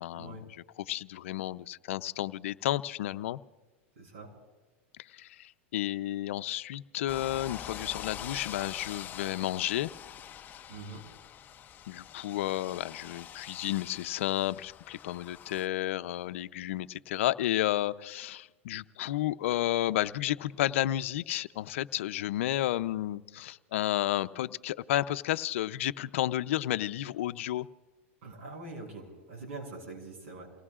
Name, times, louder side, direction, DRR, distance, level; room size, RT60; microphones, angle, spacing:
voice 1, 0.0-3.4 5.1-9.9 11.9-27.7, left 14 dB, 70° left, 12 dB, 0.6 m, -32 dB
voice 2, 3.9-4.3 10.7-11.0 28.2-30.5, right 2 dB, 75° right, 0 dB, 6.6 m, -43 dB
sound 1, 7.1-15.7, left 10 dB, 25° left, 0.7 m, -45 dB
29.0 x 19.0 x 2.5 m, 1.3 s
supercardioid pair, 130°, 7 cm